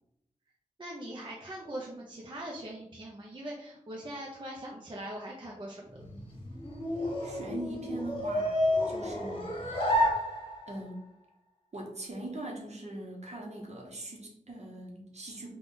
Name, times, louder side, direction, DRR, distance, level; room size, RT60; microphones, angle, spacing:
voice 1, 0.8-6.0, right 1 dB, 40° right, -3 dB, 0.6 m, -41 dB
sound 1, 5.9-10.9, left 1 dB, 45° left, 1.1 m, -31 dB
voice 2, 7.2-9.8 10.7-11.0 11.7-15.5, right 1 dB, 60° right, 0 dB, 1.0 m, -41 dB
3.6 x 2.4 x 3.8 m, 0.76 s
wide cardioid pair, 75°, 13 cm